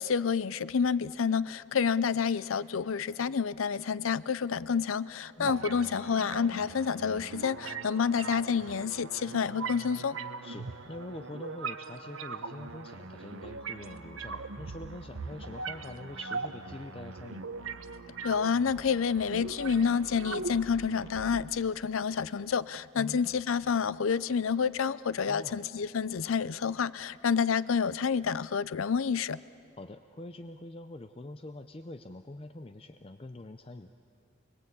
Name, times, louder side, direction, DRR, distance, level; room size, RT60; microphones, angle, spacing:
voice 1, 0.0-10.2 18.2-29.4, left 6 dB, 90° left, 18 dB, 0.5 m, -29 dB
sound 1, 5.4-21.4, right 4 dB, 85° right, 0.9 m, -40 dB
voice 2, 10.4-17.5 22.9-23.2 25.3-25.6 29.8-33.9, left 2 dB, 30° left, 9 dB, 0.5 m, -44 dB
28.5 x 20.5 x 8.5 m, 2.5 s
head